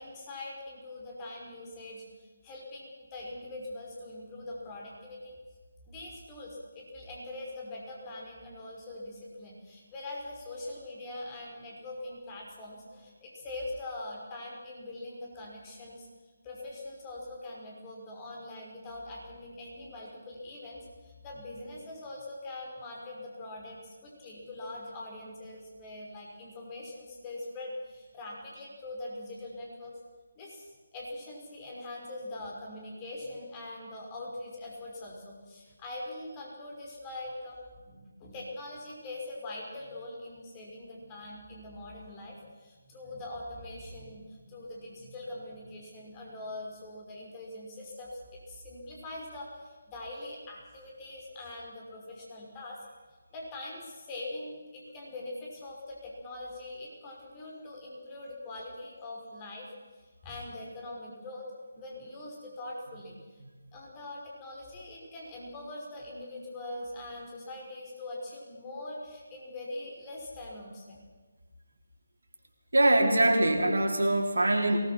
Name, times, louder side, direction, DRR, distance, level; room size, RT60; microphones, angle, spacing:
voice 1, 0.0-5.4 5.9-16.1 16.4-29.9 30.4-52.9 53.3-59.7 60.0-61.5 61.8-63.4 63.7-71.0, left 2 dB, 20° left, -1 dB, 5.6 m, -42 dB
voice 2, 72.7-74.8, right 1 dB, 75° right, 2 dB, 3.9 m, -23 dB
23.0 x 19.0 x 6.0 m, 1.4 s
figure-of-eight pair, 155°, 0 cm